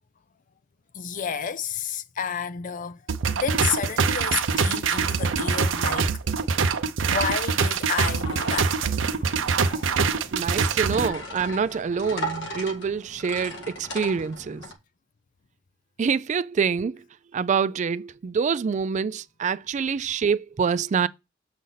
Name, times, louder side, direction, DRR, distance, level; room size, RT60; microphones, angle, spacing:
voice 1, 0.9-3.0 3.3-6.1 7.0-8.7 10.9-11.1, left 7 dB, 45° left, 0.5 m, -30 dB
sound 1, 3.1-11.1, right 5 dB, 75° right, 0.6 m, -24 dB
sound 2, 8.2-14.7, equal, 70° left, 1.7 m, -38 dB
voice 2, 10.3-14.6 16.0-17.0 17.3-21.1, right 6 dB, 40° right, 0.3 m, -26 dB
7.6 x 5.2 x 4.0 m
head